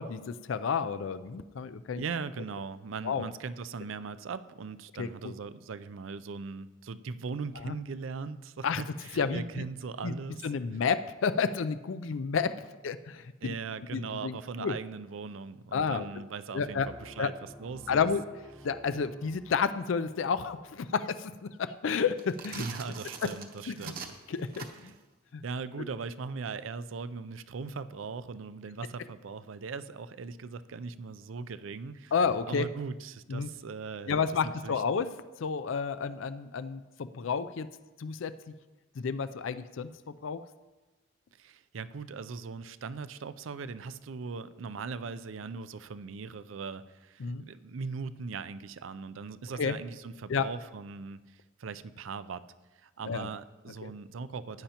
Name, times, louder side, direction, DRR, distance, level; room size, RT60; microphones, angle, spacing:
voice 1, 0.0-2.0 3.0-3.3 5.0-5.3 7.6-7.7 8.6-8.8 9.2-9.6 10.0-10.1 10.4-12.6 12.8-13.5 13.9-14.7 15.7-16.1 16.5-16.9 17.2-17.3 17.9-18.2 18.6-22.6 23.7-23.9 24.3-24.9 25.3-25.4 32.1-32.7 33.3-33.5 34.1-35.1 35.4-37.7 38.0-38.3 39.0-39.9 40.2-40.5 47.2-47.4 49.6-49.8 50.3-50.5 53.1-53.3 53.8-53.9, left 6 dB, 75° left, 13 dB, 0.4 m, -31 dB
voice 2, 2.0-10.4 13.4-18.1 22.6-24.1 24.8-25.0 25.4-32.1 32.5-34.8 41.4-52.4 52.8-54.6, right 4 dB, 75° right, 14 dB, 0.5 m, -39 dB
sound 1, 16.6-20.2, equal, ahead, 0.7 m, -51 dB
sound 2, 22.1-25.0, right 6 dB, 45° right, 1.0 m, -43 dB
15.5 x 10.0 x 2.9 m, 1.2 s
head